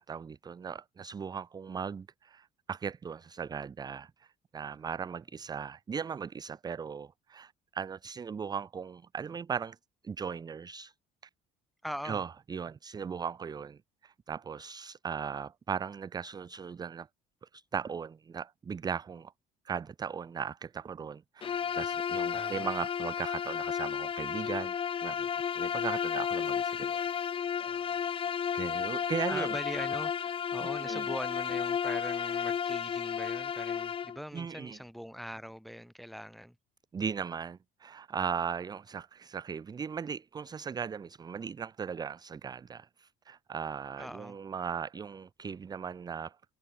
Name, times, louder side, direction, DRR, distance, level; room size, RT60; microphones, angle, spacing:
voice 1, 0.0-4.3 4.5-9.8 10.0-10.9 12.0-17.1 17.5-19.3 19.7-24.7 25.0-25.3 25.6-27.0 28.5-29.5 30.8-31.1 34.3-34.8 36.9-46.4, right 6 dB, 25° right, 0.5 m, -38 dB
voice 2, 11.8-12.2 21.4-21.8 22.3-22.7 27.6-28.0 29.3-36.6 44.0-44.4, equal, ahead, 4.0 m, -42 dB
Bowed string instrument, 21.4-34.2, left 7 dB, 30° left, 0.5 m, -33 dB
cardioid pair, 110°, 17 cm